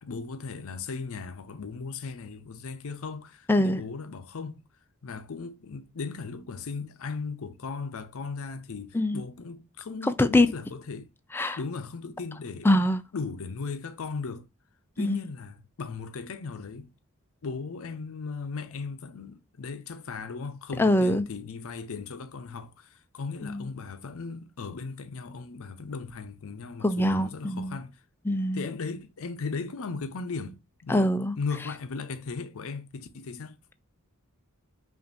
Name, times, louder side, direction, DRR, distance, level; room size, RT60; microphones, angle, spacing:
voice 1, 0.0-4.6 5.0-11.1 11.6-12.7 13.1-14.5 15.0-16.9 17.4-28.0 28.5-33.6, left 4 dB, 70° left, 0.6 m, -37 dB
voice 2, 3.5-3.8 8.9-9.2 10.2-10.5 11.3-11.6 12.6-13.0 15.0-15.2 20.8-21.2 23.4-23.6 26.8-27.8 28.3-28.6 30.9-31.3, left 1 dB, 10° left, 0.3 m, -23 dB
5.4 x 2.5 x 2.6 m
head